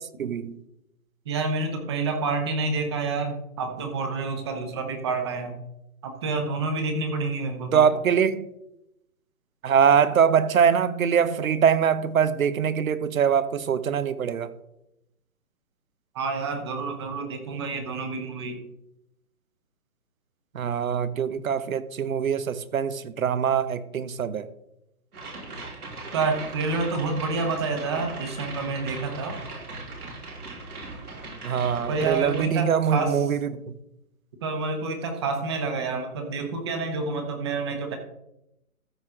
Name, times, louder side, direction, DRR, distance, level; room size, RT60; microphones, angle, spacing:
voice 1, 0.2-0.6 7.7-8.5 9.6-14.5 20.5-24.5 31.4-33.7, right 7 dB, 65° right, 1.0 m, -23 dB
voice 2, 1.2-5.6 6.0-7.8 16.1-18.6 26.1-29.4 31.9-33.4 34.4-38.0, right 3 dB, 20° right, 0.9 m, -28 dB
sound 1, 25.1-32.5, right 3 dB, 80° right, 4.3 m, -39 dB
14.0 x 6.3 x 3.7 m
hypercardioid pair, 160°, 44 cm